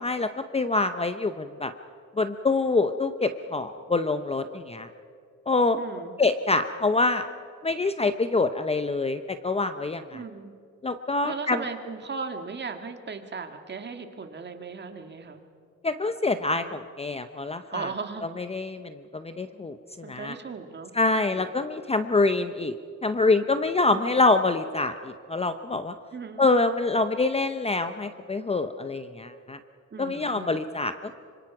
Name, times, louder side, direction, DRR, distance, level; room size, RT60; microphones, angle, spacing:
voice 1, 0.0-1.7 2.2-4.9 5.5-5.8 6.2-7.2 7.6-10.2 10.8-11.6 15.8-17.9 18.4-20.4 21.0-22.7 23.0-25.9 26.4-29.6 30.0-30.9, left 3 dB, 20° left, 9 dB, 0.7 m, -25 dB
voice 2, 5.8-6.1 10.1-10.5 11.2-15.4 17.7-18.3 20.0-21.5 23.9-24.0 26.1-26.5 29.9-30.6, right 5 dB, 35° right, 6 dB, 1.8 m, -37 dB
25.5 x 25.0 x 6.0 m, 2.3 s
cardioid pair, 135°, 32 cm